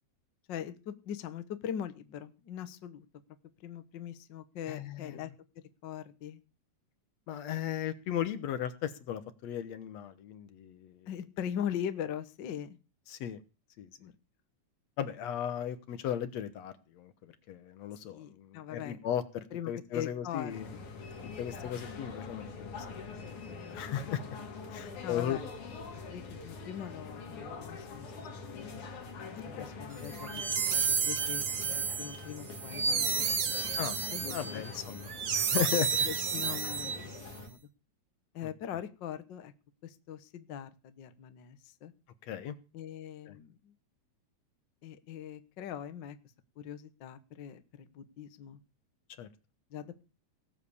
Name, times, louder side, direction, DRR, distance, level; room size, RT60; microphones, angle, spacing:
voice 1, 0.5-3.1 3.6-5.3 5.8-6.4 11.1-12.8 14.0-14.1 18.0-19.1 19.5-20.8 21.2-21.4 25.0-25.5 25.9-28.8 29.4-33.7 34.1-34.6 36.0-36.9 37.4-37.6 38.3-39.5 39.8-41.9 42.7-43.7 44.8-46.2 46.6-48.6 49.7-50.0, left 9 dB, 55° left, 11 dB, 1.4 m, -41 dB
voice 2, 4.7-5.2 7.3-11.1 13.1-13.4 13.8-13.9 15.0-20.7 21.4-22.9 23.2-24.4 24.7-25.4 29.6-29.7 33.8-34.0 34.3-36.1 38.4-38.5 42.3-42.6 43.3-43.4 49.2-49.3, left 10 dB, 70° left, 12 dB, 2.2 m, -36 dB
sound 1, 20.5-37.5, left 4 dB, 85° left, 4.1 m, -44 dB
sound 2, 30.0-37.3, right 6 dB, 45° right, 1.9 m, -31 dB
18.0 x 7.7 x 7.0 m, 0.32 s
omnidirectional pair, 3.3 m